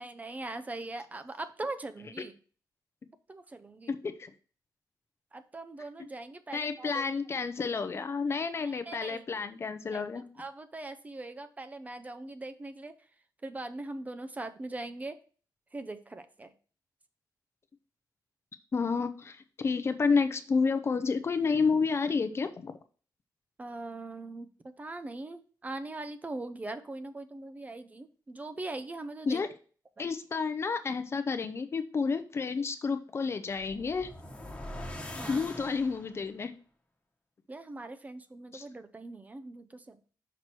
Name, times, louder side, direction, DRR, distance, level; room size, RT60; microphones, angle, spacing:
voice 1, 0.0-2.4 3.3-3.9 5.3-7.0 8.3-9.2 9.9-10.0 10.4-12.9 13.4-15.2 15.7-16.5 23.6-24.5 24.8-29.4 30.0-30.1 35.2-35.4 37.5-40.0, right 2 dB, 20° right, 9 dB, 0.6 m, -41 dB
voice 2, 3.9-4.3 6.5-10.3 18.7-22.8 29.3-29.5 30.0-34.1 35.3-36.5 38.5-38.6, left 5 dB, 35° left, 10 dB, 0.6 m, -30 dB
sound 1, 33.5-36.3, left 1 dB, 15° left, 1.2 m, -42 dB
6.0 x 4.7 x 4.4 m, 0.39 s
wide cardioid pair, 135°, 7 cm